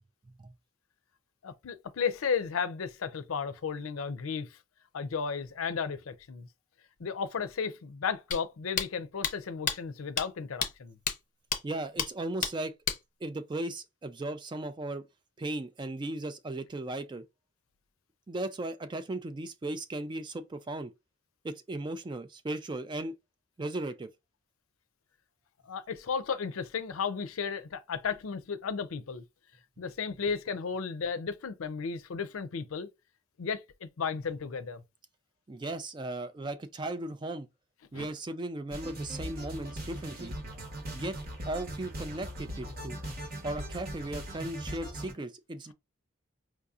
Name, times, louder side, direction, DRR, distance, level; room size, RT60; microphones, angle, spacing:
voice 1, 1.4-4.6 4.9-6.5 7.0-11.0 25.6-29.2 29.8-32.9 33.4-34.8 37.9-38.1, left 6 dB, 90° left, 0.5 m, -34 dB
sound 1, 8.3-8.4 8.8-8.9 9.2-9.3 9.7-9.8 10.2-10.3 10.6-10.7 11.1-11.2 11.5-11.6 12.0-12.1 12.4-12.5 12.9-13.0, left 7 dB, 40° left, 0.6 m, -29 dB
voice 2, 11.6-12.7 13.2-15.0 15.4-17.2 18.3-20.9 21.4-23.2 23.6-24.1 35.5-37.5 37.9-40.3 40.9-41.2 41.5-43.0 43.4-45.7, right 2 dB, 20° right, 0.3 m, -36 dB
sound 2, 38.7-45.1, right 1 dB, 45° right, 1.0 m, -40 dB
4.7 x 2.7 x 2.4 m
head